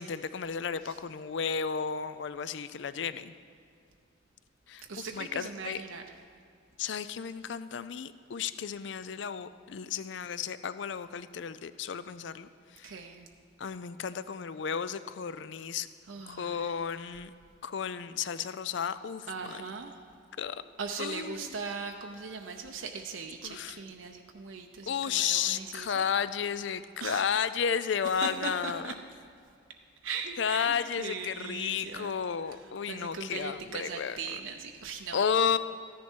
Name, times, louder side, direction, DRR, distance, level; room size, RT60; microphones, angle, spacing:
voice 1, 0.0-3.3 4.7-5.8 6.8-12.9 13.6-15.9 16.3-17.3 17.6-19.6 20.4-20.6 21.0-21.5 23.4-23.8 24.9-28.9 30.4-34.2 35.1-35.6, left 7 dB, 65° left, 14 dB, 0.4 m, -33 dB
voice 2, 4.9-6.0 12.8-13.3 16.1-16.8 19.3-20.0 20.8-26.0 27.0-27.3 28.2-28.9 30.0-32.1 32.5-35.2, right 5 dB, 80° right, 3 dB, 0.7 m, -39 dB
14.5 x 10.5 x 4.5 m, 2.4 s
head